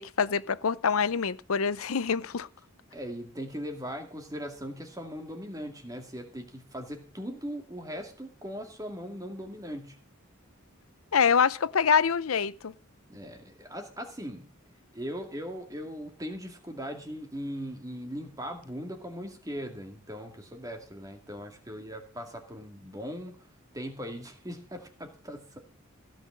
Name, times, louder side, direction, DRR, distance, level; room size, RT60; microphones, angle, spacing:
voice 1, 0.0-2.5 11.1-12.7, left 6 dB, 85° left, 0.6 m, -25 dB
voice 2, 2.9-10.0 13.1-14.5 14.9-23.4 23.7-25.6, equal, 15° right, 2.2 m, -39 dB
16.0 x 6.1 x 7.4 m
head